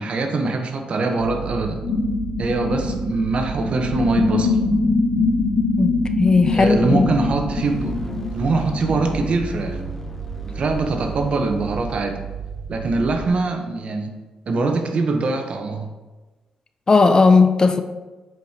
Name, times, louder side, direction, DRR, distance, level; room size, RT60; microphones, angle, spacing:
voice 1, 0.0-1.8 2.4-4.6 6.5-9.8 10.4-12.2 12.7-14.1 14.5-15.9, right 3 dB, 55° right, 5 dB, 0.8 m, -23 dB
sound 1, 1.2-13.3, right 7 dB, 85° right, 0.6 m, -33 dB
sound 2, 1.8-9.5, left 3 dB, 80° left, 2.0 m, -23 dB
voice 2, 5.8-7.1 16.9-17.8, left 4 dB, 30° left, 8 dB, 0.4 m, -16 dB
sound 3, 7.6-12.9, left 2 dB, 15° left, 0.9 m, -38 dB
7.4 x 5.0 x 2.8 m, 1.2 s
cardioid pair, 90°, 2 cm